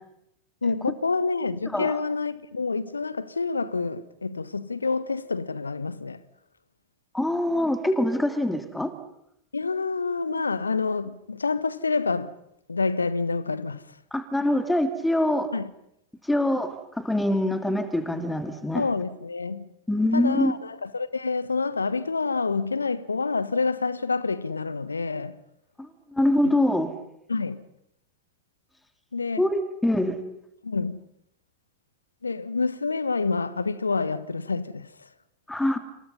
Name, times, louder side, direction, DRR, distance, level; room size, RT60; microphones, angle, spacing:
voice 1, 0.6-6.2 9.5-12.3 12.7-13.8 15.5-15.7 18.7-19.7 20.1-25.3 26.4-26.5 27.3-27.6 29.1-29.4 30.6-31.0 32.2-34.9, left 4 dB, 75° left, 1.4 m, -27 dB
voice 2, 7.1-8.9 14.1-15.5 16.3-18.8 19.9-20.5 25.8-26.9 29.4-30.1 35.5-35.8, left 1 dB, 5° left, 2.9 m, -24 dB
28.0 x 27.5 x 5.6 m
figure-of-eight pair, 90°, 0 cm